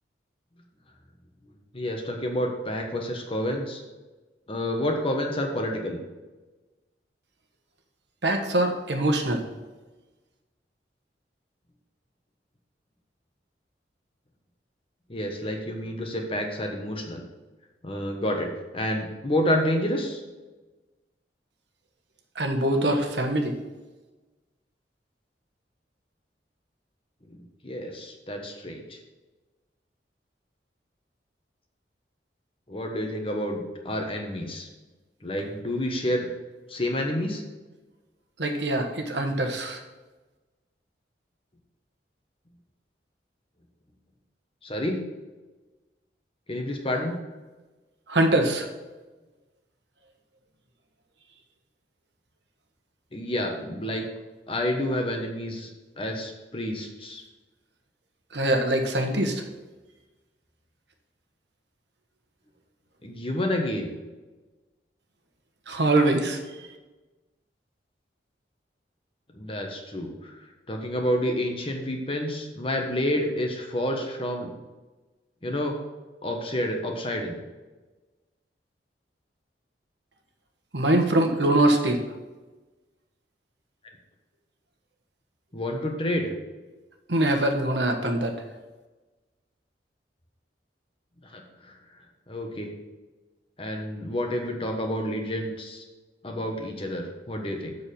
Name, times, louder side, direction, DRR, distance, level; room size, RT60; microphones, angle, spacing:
voice 1, 1.7-3.8 4.5-6.0 15.1-17.2 17.8-20.2 27.3-27.4 27.6-29.0 32.7-34.7 35.2-36.3 36.7-37.4 44.6-45.0 46.5-47.2 53.1-54.0 54.5-55.7 56.0-57.2 63.0-64.0 69.3-70.3 70.7-74.5 75.4-75.8 76.2-77.4 85.5-86.3 91.3-91.7 92.3-92.7 93.6-95.8 96.2-97.8, left 1 dB, 30° left, 2 dB, 1.3 m, -29 dB
voice 2, 8.2-9.4 22.3-23.6 38.4-39.8 48.1-48.7 58.3-59.4 65.7-66.4 80.7-82.0 87.1-88.3, right 1 dB, 75° right, 4 dB, 1.3 m, -23 dB
7.3 x 6.7 x 5.4 m, 1.2 s
head